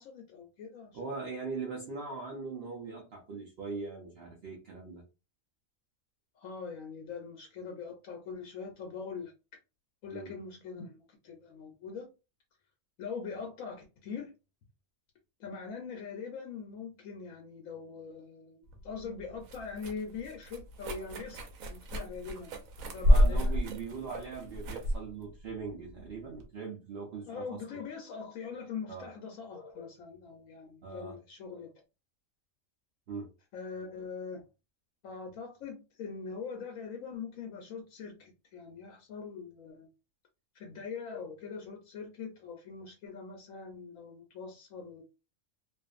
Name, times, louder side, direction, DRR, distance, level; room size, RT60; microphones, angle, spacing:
voice 1, 0.0-1.0 6.3-9.3 10.0-12.1 13.0-14.3 15.4-22.6 22.9-23.5 27.3-31.7 33.5-34.4 35.0-39.9 40.5-45.0, left 5 dB, 80° left, 1.0 m, -42 dB
voice 2, 0.9-5.0 10.1-10.3 23.1-27.6 28.9-29.1 30.8-31.2 33.1-33.3, right 4 dB, 55° right, 0.8 m, -40 dB
sound 1, 18.7-26.5, equal, 85° right, 1.0 m, -30 dB
2.5 x 2.4 x 2.4 m
omnidirectional pair, 1.4 m